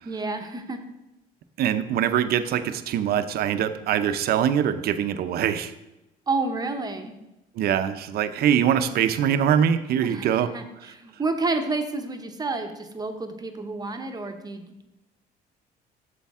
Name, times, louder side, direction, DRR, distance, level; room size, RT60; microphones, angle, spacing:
voice 1, 0.0-0.8 6.3-7.2 10.0-14.9, right 3 dB, 25° right, 5 dB, 0.8 m, -30 dB
voice 2, 1.6-5.7 7.6-10.5, right 9 dB, 65° right, 10 dB, 0.6 m, -23 dB
8.4 x 6.9 x 3.6 m, 0.96 s
cardioid pair, 110°, 17 cm